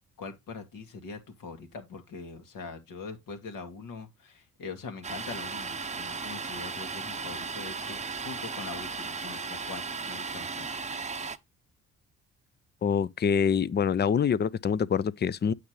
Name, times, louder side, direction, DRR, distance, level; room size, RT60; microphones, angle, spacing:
voice 1, 0.2-8.0 8.2-10.7, left 4 dB, 65° left, 2.0 m, -42 dB
Domestic sounds home sounds, 5.0-11.4, right 4 dB, 20° right, 0.8 m, -36 dB
voice 2, 12.8-15.5, left 7 dB, 30° left, 0.6 m, -25 dB
8.6 x 6.3 x 3.2 m
hypercardioid pair, 50°, 36 cm